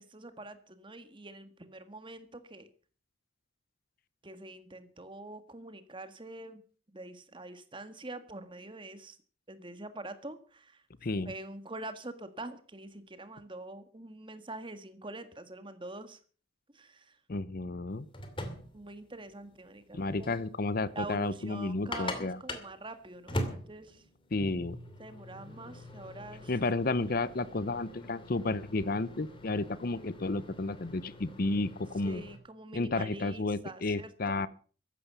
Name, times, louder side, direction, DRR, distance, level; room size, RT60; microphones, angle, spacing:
voice 1, 0.0-2.7 4.2-6.6 6.9-9.2 9.5-10.8 11.2-16.2 16.7-17.2 18.7-20.4 20.9-24.0 25.0-26.5 32.0-34.4, right 2 dB, 25° right, 10 dB, 1.7 m, -45 dB
voice 2, 11.0-11.3 17.3-18.1 19.9-22.4 24.3-24.8 26.5-32.2 32.7-34.5, left 2 dB, 50° left, 18 dB, 0.7 m, -32 dB
sound 1, 17.9-32.4, left 1 dB, 25° left, 2.6 m, -43 dB
15.0 x 11.5 x 6.9 m, 0.41 s
head